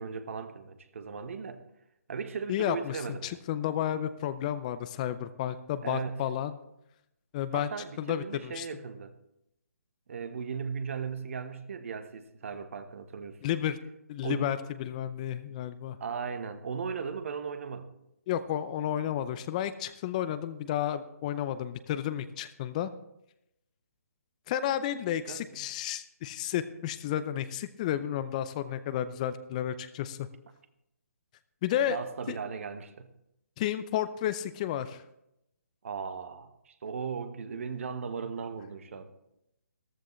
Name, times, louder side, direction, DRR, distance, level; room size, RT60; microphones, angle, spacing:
voice 1, 0.0-1.6 2.1-3.4 5.8-6.2 7.5-9.1 10.1-13.4 14.2-14.5 16.0-17.9 25.3-25.4 31.9-33.1 35.8-39.1, right 6 dB, 55° right, 1.2 m, -37 dB
voice 2, 2.5-6.5 7.3-7.7 8.0-8.7 13.4-13.8 14.1-16.0 18.3-22.9 24.5-30.3 31.6-32.0 32.3-32.4 33.6-35.0, left 11 dB, 25° left, 0.5 m, -32 dB
14.0 x 13.5 x 3.2 m
hypercardioid pair, 150°, 8 cm